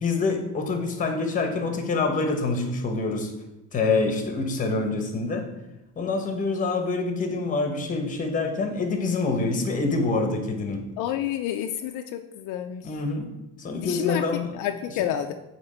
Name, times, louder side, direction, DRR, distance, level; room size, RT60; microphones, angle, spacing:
voice 1, 0.0-3.3 3.7-5.5 6.0-10.8 12.8-13.3 13.6-14.5, left 3 dB, 25° left, 5 dB, 0.9 m, -26 dB
voice 2, 11.0-12.9 13.8-14.2 14.5-15.3, left 11 dB, 70° left, 6 dB, 0.5 m, -29 dB
8.4 x 2.9 x 4.3 m, 0.92 s
cardioid pair, 145°, 32 cm